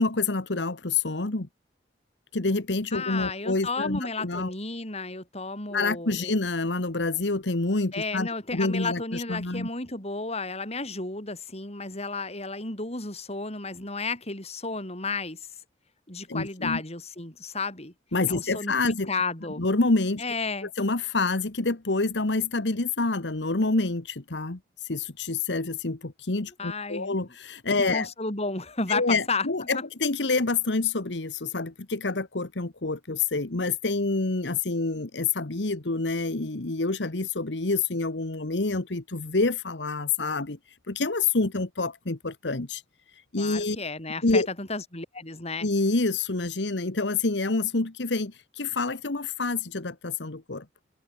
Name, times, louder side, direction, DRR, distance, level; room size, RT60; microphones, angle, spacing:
voice 1, 0.0-1.5 2.3-4.5 5.7-9.7 16.3-16.8 18.1-19.1 19.6-20.2 20.6-28.1 28.9-40.6 40.9-42.8 43.3-43.8 44.2-44.5 45.6-50.6, left 3 dB, 90° left, 1.5 m, -27 dB
voice 2, 2.9-6.4 7.9-15.5 16.1-17.9 18.3-18.7 19.1-19.6 20.2-20.7 26.6-27.2 27.9-29.5 29.7-29.8 43.4-45.7, left 3 dB, 35° left, 7.7 m, -32 dB
head